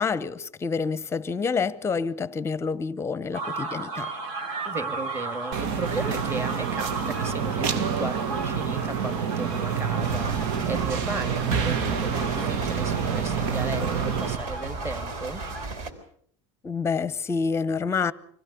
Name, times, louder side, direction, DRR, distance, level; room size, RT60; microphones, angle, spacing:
voice 1, 0.0-4.1 16.6-18.1, left 5 dB, 15° left, 0.9 m, -27 dB
sound 1, 3.3-15.7, right 3 dB, 85° right, 6.3 m, -35 dB
voice 2, 4.6-15.4, right 2 dB, 15° right, 2.3 m, -35 dB
sound 2, 5.5-14.4, right 7 dB, 65° right, 2.0 m, -28 dB
sound 3, 10.0-15.9, right 3 dB, 50° right, 4.7 m, -35 dB
25.0 x 16.5 x 8.3 m
supercardioid pair, 145°, 16 cm